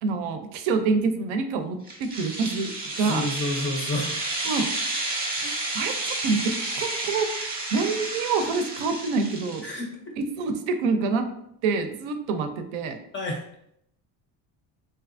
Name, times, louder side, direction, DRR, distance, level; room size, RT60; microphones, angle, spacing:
voice 1, 0.0-2.7 3.0-3.2 4.5-4.7 5.7-7.3 7.7-9.6 10.2-11.3 11.6-13.0, right 4 dB, 80° right, 7 dB, 0.6 m, -26 dB
sound 1, 1.9-9.8, right 2 dB, 20° right, 0.6 m, -31 dB
voice 2, 3.0-4.2 5.4-5.6 9.6-10.1 13.1-13.4, left 1 dB, 30° left, 1 dB, 0.4 m, -30 dB
3.3 x 2.7 x 2.4 m, 0.73 s
cardioid pair, 150°, 46 cm